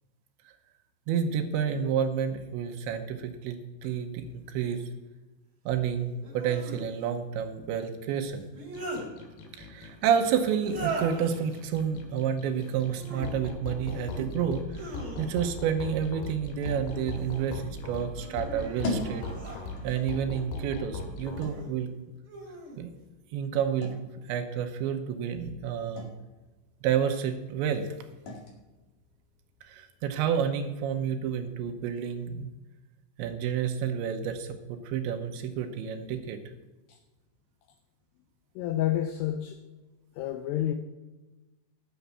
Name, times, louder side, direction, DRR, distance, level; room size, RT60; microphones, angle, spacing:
voice 1, 1.1-4.8 5.7-8.5 9.6-19.2 19.8-21.9 22.8-22.9 23.3-26.1 26.8-27.9 29.7-32.5 33.2-36.4, right 8 dB, 75° right, 6 dB, 3.1 m, -30 dB
sound 1, 3.8-3.9 6.2-6.8 8.3-9.1 10.6-11.3 12.8-13.3 13.8-14.3 14.7-15.6 16.8-17.5 18.1-20.1 21.2-21.7 22.3-22.8, right 3 dB, 30° right, 3.3 m, -40 dB
sound 2, 8.7-21.4, left 3 dB, 70° left, 3.8 m, -39 dB
sound 3, 12.6-30.9, left 2 dB, 50° left, 3.2 m, -45 dB
voice 2, 38.6-39.6 40.2-40.7, left 12 dB, 85° left, 7 dB, 2.4 m, -29 dB
11.5 x 7.2 x 6.8 m, 1.1 s
omnidirectional pair, 5.5 m